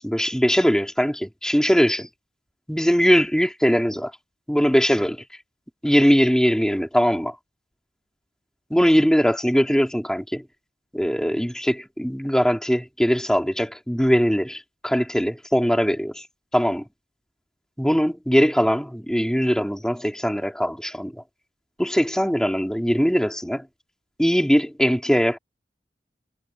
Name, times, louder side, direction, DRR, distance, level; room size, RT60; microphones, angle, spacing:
voice 1, 0.0-2.1 2.7-4.1 4.5-5.2 5.8-7.3 8.7-10.4 10.9-16.3 16.5-16.8 17.8-21.2 21.8-23.7 24.2-25.4, equal, 5° left, 3.3 m, -21 dB
head